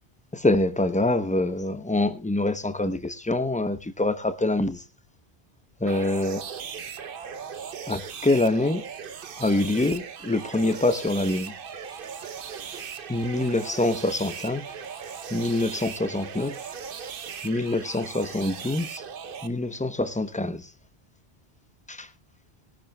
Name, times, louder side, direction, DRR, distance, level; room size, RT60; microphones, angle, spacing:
voice 1, 0.3-4.8 5.8-6.4 7.9-8.8 9.4-11.5 13.1-14.7 15.3-16.6 17.4-19.0 19.4-20.7 21.9-22.1, left 2 dB, 10° left, 0.7 m, -25 dB
sound 1, 5.9-19.5, right 7 dB, 60° right, 0.9 m, -38 dB
21.5 x 10.5 x 2.3 m
omnidirectional pair, 1.1 m